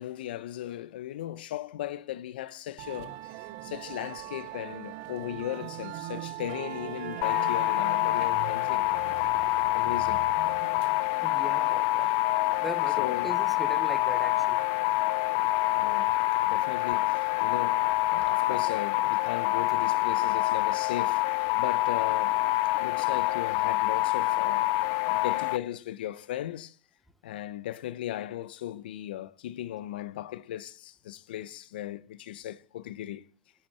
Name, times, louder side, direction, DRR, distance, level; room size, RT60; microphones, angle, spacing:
voice 1, 0.0-8.9 9.7-10.3 13.0-13.4 15.7-16.2 16.4-21.3 21.6-22.5 22.8-24.8 25.1-26.8 27.2-33.3, left 13 dB, 75° left, 0.8 m, -37 dB
Musical instrument, 2.8-18.3, right 14 dB, 35° right, 0.7 m, -43 dB
Wind instrument woodwind instrument, 6.5-11.5, right 4 dB, 85° right, 4.2 m, -47 dB
sound 1, 7.2-25.6, left 17 dB, 40° left, 0.5 m, -26 dB
voice 2, 11.2-12.1 12.6-14.6, left 1 dB, ahead, 1.0 m, -39 dB
10.5 x 8.8 x 6.8 m
supercardioid pair, 170°, 5 cm